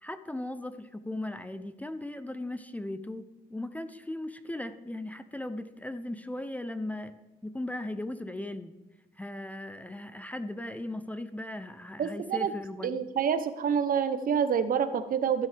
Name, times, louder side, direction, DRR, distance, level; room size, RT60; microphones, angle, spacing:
voice 1, 0.0-7.2 7.4-8.8 9.2-13.0, left 1 dB, 10° left, 11 dB, 0.5 m, -37 dB
voice 2, 12.0-12.5 12.8-15.5, right 7 dB, 55° right, 11 dB, 0.8 m, -27 dB
15.0 x 7.5 x 3.4 m, 1.1 s
cardioid pair, 95°, 17 cm